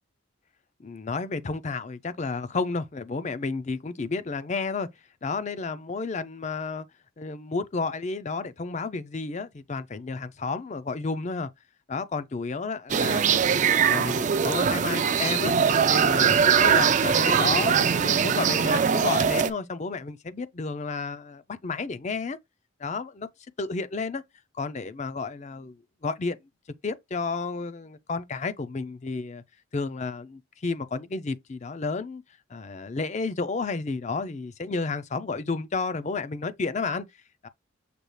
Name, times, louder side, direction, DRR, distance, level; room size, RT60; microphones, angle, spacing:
voice 1, 0.8-4.9 5.2-6.9 7.2-11.5 11.9-13.4 13.7-22.4 22.8-23.3 23.6-24.2 24.6-25.8 26.0-26.4 26.8-29.4 29.7-32.2 32.5-37.0, left 4 dB, 35° left, 0.5 m, -31 dB
sound 1, 12.9-19.5, right 7 dB, 40° right, 0.3 m, -22 dB
6.7 x 2.4 x 3.1 m
head